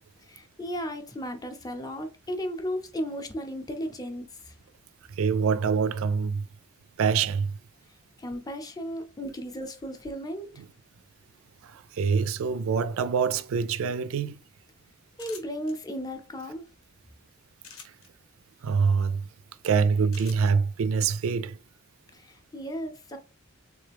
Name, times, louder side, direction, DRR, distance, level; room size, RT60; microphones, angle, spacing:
voice 1, 0.3-4.5 8.2-10.6 15.2-16.6 22.1-23.2, equal, 20° left, 0.6 m, -35 dB
voice 2, 5.1-6.5 7.0-7.6 10.6-10.7 11.6-14.4 17.8-17.9 18.6-19.3 19.6-21.6, right 5 dB, 75° right, 0.3 m, -25 dB
sound 1, 15.1-15.7 17.6-18.1 20.1-20.5, left 6 dB, 85° left, 1.0 m, -45 dB
3.6 x 3.3 x 3.4 m
head